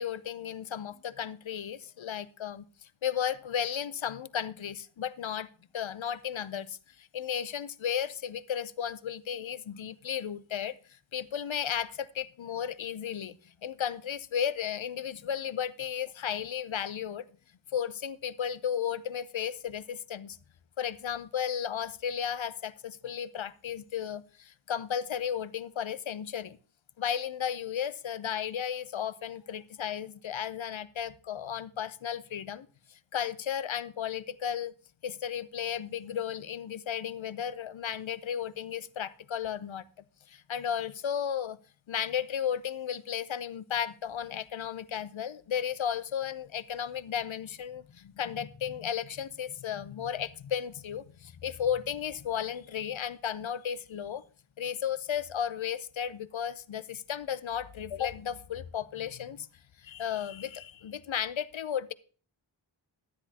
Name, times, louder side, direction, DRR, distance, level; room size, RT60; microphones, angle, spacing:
voice 1, 0.0-2.6 3.0-5.5 5.7-10.8 11.1-13.4 13.6-17.3 17.7-20.4 20.8-26.6 27.0-34.7 35.0-39.8 40.3-41.6 41.9-54.2 54.6-59.5 59.8-61.9, left 8 dB, 75° left, 0.6 m, -34 dB
12.0 x 10.0 x 2.8 m
wide cardioid pair, 60°, 47 cm